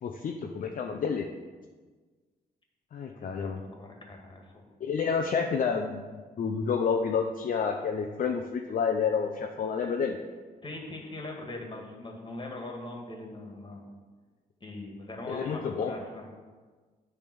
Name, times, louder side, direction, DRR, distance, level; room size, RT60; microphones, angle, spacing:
voice 1, 0.0-1.3 2.9-3.6 4.8-10.2 15.3-15.9, left 6 dB, 55° left, 3 dB, 0.6 m, -29 dB
voice 2, 3.1-4.7 10.6-13.8 14.6-16.3, left 2 dB, 30° left, 1 dB, 1.9 m, -41 dB
9.0 x 3.5 x 6.2 m, 1.4 s
cardioid pair, 70°, 17 cm